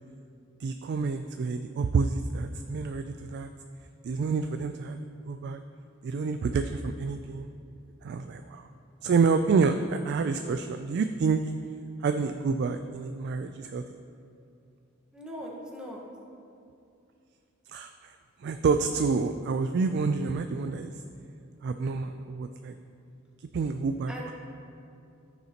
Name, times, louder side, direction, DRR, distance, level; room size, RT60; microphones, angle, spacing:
voice 1, 0.6-3.5 4.0-5.6 6.0-7.5 8.0-8.7 9.0-11.4 12.0-13.8 17.7-18.1 18.4-20.9 21.6-22.7 23.4-24.3, right 4 dB, 55° right, 8 dB, 0.3 m, -28 dB
voice 2, 15.1-16.0 24.1-24.3, equal, 5° right, -4 dB, 1.3 m, -39 dB
14.0 x 6.7 x 2.9 m, 2.5 s
head